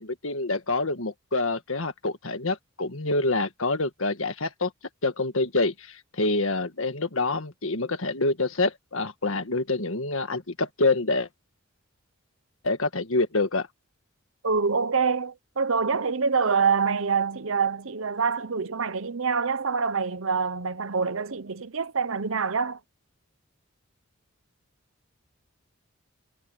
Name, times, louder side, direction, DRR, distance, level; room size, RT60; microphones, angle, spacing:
voice 1, 0.0-4.7 5.0-11.3 12.6-13.7, left 2 dB, 70° left, 1.7 m, -26 dB
voice 2, 14.4-22.8, right 5 dB, 70° right, 0.9 m, -26 dB
head